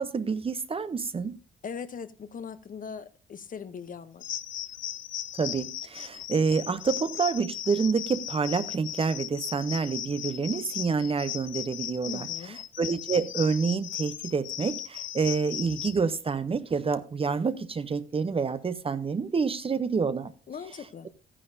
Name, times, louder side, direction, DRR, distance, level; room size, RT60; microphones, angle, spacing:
voice 1, 0.0-1.4 5.4-20.3, right 5 dB, 30° right, 0.6 m, -28 dB
voice 2, 1.6-4.2 12.1-12.6 20.5-21.1, left 6 dB, 45° left, 0.8 m, -40 dB
sound 1, 4.2-16.0, left 12 dB, 75° left, 0.7 m, -37 dB
13.5 x 9.9 x 2.6 m
cardioid pair, 90°, 20 cm